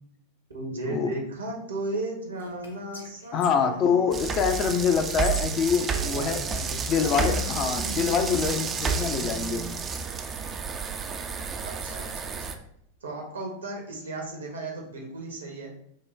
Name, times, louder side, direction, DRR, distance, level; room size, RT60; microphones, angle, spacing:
voice 1, 0.5-4.3 6.0-9.7 11.6-12.5 13.0-15.7, right 2 dB, 70° right, 1 dB, 1.1 m, -36 dB
Whispering, 2.3-4.3 4.9-7.1, left 1 dB, 75° left, 0.8 m, -44 dB
voice 2, 3.3-9.6, left 6 dB, 35° left, 7 dB, 0.5 m, -25 dB
sound 1, 4.1-12.6, right 5 dB, 25° right, 0.4 m, -30 dB
5.3 x 2.2 x 3.4 m, 0.74 s
figure-of-eight pair, 90°, 0 cm